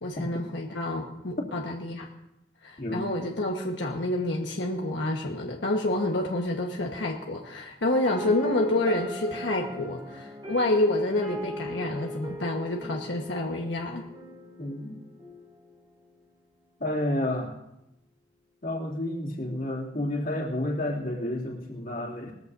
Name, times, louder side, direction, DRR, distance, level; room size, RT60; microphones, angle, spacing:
voice 1, 0.0-2.1 2.6-14.0, left 1 dB, 85° left, 0 dB, 1.3 m, -28 dB
voice 2, 2.8-3.1 14.6-14.9 16.8-17.5 18.6-22.3, left 1 dB, 50° left, -2 dB, 2.6 m, -30 dB
sound 1, 8.0-16.0, left 1 dB, 30° right, 2.9 m, -39 dB
20.5 x 14.5 x 2.7 m, 0.88 s
head